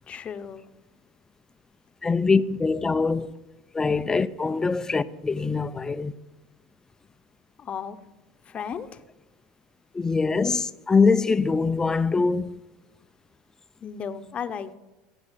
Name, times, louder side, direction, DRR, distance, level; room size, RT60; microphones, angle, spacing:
voice 1, 0.1-0.6 7.6-8.0 8.5-9.0 13.8-14.7, left 7 dB, 35° left, 1.0 m, -34 dB
voice 2, 2.0-3.3 3.7-6.1 9.9-12.6, left 4 dB, 15° left, 0.6 m, -23 dB
16.5 x 8.0 x 7.4 m
supercardioid pair, 95°, 3 cm